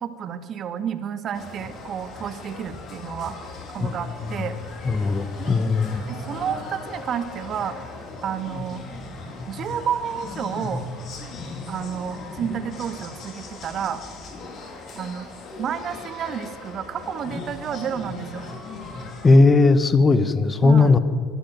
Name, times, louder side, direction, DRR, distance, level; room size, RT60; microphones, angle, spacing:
voice 1, 0.0-3.4 3.7-4.5 5.4-5.5 6.1-7.8 8.2-8.8 9.5-10.8 11.7-14.0 14.9-15.3 15.6-18.5 20.6-20.9, right 8 dB, 45° right, 9 dB, 2.2 m, -30 dB
sound 1, 1.3-19.4, left 3 dB, 45° left, 4.9 m, -37 dB
voice 2, 4.8-6.0 19.2-21.0, left 3 dB, 25° left, 12 dB, 1.5 m, -17 dB
23.5 x 13.0 x 9.2 m, 2.1 s
hypercardioid pair, 75°, 0 cm